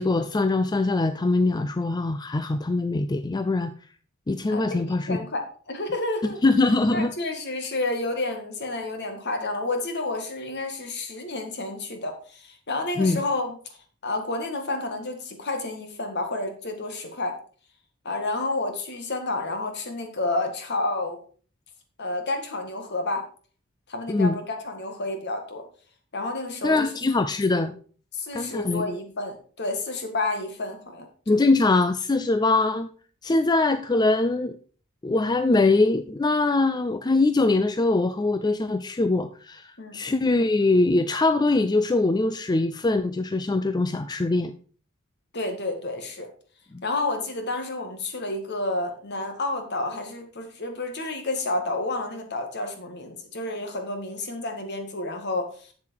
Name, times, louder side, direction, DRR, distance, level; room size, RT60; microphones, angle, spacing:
voice 1, 0.0-3.7 4.3-5.2 6.4-7.1 13.0-13.2 24.1-24.3 26.6-27.7 28.3-28.9 31.3-32.9 33.2-34.6 35.0-44.5 46.7-46.8, left 2 dB, 20° left, 10 dB, 0.4 m, -22 dB
voice 2, 4.5-6.4 6.9-13.6 14.0-17.3 18.0-21.2 22.0-23.2 23.9-25.6 26.1-26.9 27.6-27.7 28.1-31.4 39.8-40.0 45.3-46.3 46.8-55.7, left 2 dB, 55° left, 5 dB, 1.9 m, -30 dB
7.7 x 7.2 x 4.6 m, 0.42 s
head